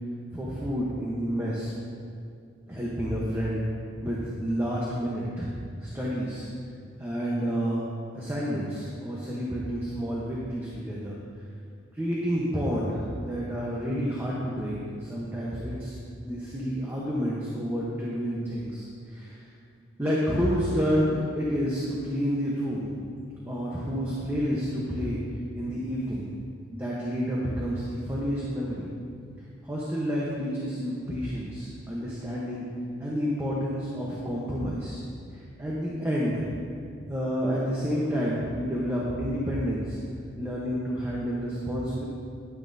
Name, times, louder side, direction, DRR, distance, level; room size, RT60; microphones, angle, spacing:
voice 1, 0.3-1.7 2.7-3.6 4.0-5.5 5.8-6.5 7.0-7.9 8.1-11.2 11.9-16.0 16.2-19.4 20.0-22.9 23.5-25.2 25.5-26.3 26.7-28.9 29.6-32.7 33.0-35.0 35.3-36.5 37.1-40.0 40.4-42.0, equal, 10° right, -6 dB, 0.9 m, -29 dB
10.5 x 9.7 x 2.7 m, 2.3 s
head